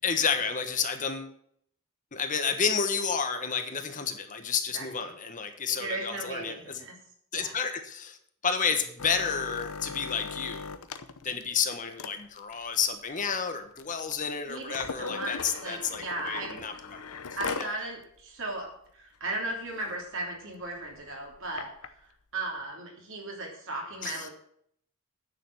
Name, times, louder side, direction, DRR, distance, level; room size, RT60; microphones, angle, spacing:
voice 1, 0.0-1.3 2.1-6.8 7.3-8.2 8.4-10.8 11.2-16.7 17.6-17.7 24.0-24.3, left 6 dB, 35° left, 6 dB, 1.2 m, -30 dB
voice 2, 4.7-5.1 5.8-6.9 7.3-7.5 14.5-16.6 17.4-21.7 22.3-24.3, right 2 dB, 60° right, 0 dB, 3.3 m, -36 dB
sound 1, 9.0-17.8 18.2-18.3 18.6-18.9 19.3-19.4 19.7-20.0 20.6-21.9 22.6-22.7, left 5 dB, 85° left, 0.9 m, -39 dB
9.4 x 6.9 x 8.5 m, 0.67 s
head